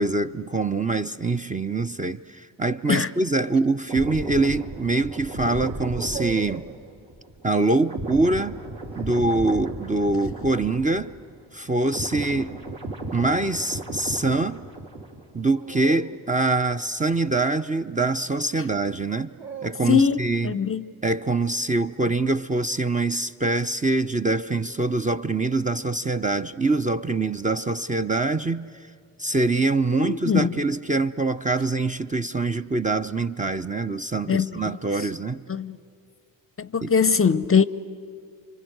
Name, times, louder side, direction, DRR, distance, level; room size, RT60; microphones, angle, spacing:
voice 1, 0.0-6.7 7.4-8.6 9.0-11.1 11.5-12.5 13.1-14.6 15.3-19.3 19.6-20.6 21.0-28.7 29.2-35.4 36.8-36.9, right 3 dB, 15° right, 0.6 m, -24 dB
sound 1, 3.7-4.0 5.6-6.8 8.9-9.9 12.3-12.7 15.5-17.9 18.9-20.2, right 6 dB, 45° right, 3.8 m, -41 dB
sound 2, 3.9-11.4 11.6-15.4 15.6-15.9, right 2 dB, 65° right, 3.4 m, -35 dB
voice 2, 19.9-20.9 30.0-30.6 34.3-34.7 35.5-35.8 36.6-37.6, left 6 dB, 30° left, 0.7 m, -22 dB
28.0 x 24.5 x 8.0 m
hypercardioid pair, 40°, 48 cm